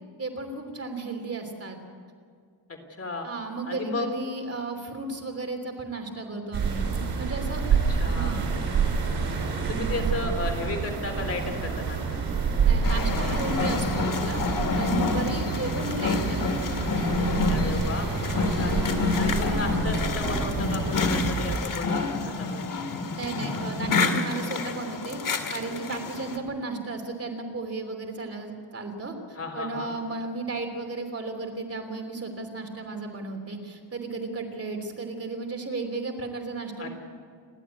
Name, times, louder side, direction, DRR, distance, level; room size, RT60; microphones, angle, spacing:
voice 1, 0.2-1.8 3.2-6.8 7.2-7.7 8.1-8.6 12.6-16.8 23.1-36.9, right 3 dB, 35° right, 4 dB, 3.2 m, -34 dB
voice 2, 2.7-3.3 3.7-4.2 7.9-8.4 9.6-12.2 17.5-18.8 19.2-22.7 29.4-29.9 36.8-36.9, left 2 dB, 35° left, 3 dB, 3.7 m, -34 dB
sound 1, 6.5-21.6, right 5 dB, 90° right, 5.9 m, -28 dB
sound 2, 12.8-26.4, left 4 dB, 55° left, 2.2 m, -28 dB
29.0 x 12.0 x 8.4 m, 2.1 s
wide cardioid pair, 115°, 39 cm